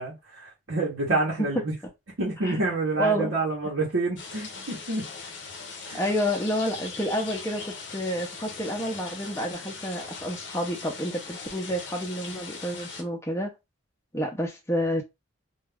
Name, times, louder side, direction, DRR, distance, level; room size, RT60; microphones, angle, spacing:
voice 1, 0.0-1.7 2.2-5.1 5.8-6.0, right 2 dB, 75° right, 0.9 m, -28 dB
voice 2, 3.0-3.3 5.9-13.5 14.1-15.0, equal, 15° left, 0.6 m, -29 dB
sound 1, 4.2-13.0, left 4 dB, 60° left, 0.7 m, -40 dB
2.3 x 2.3 x 3.3 m
head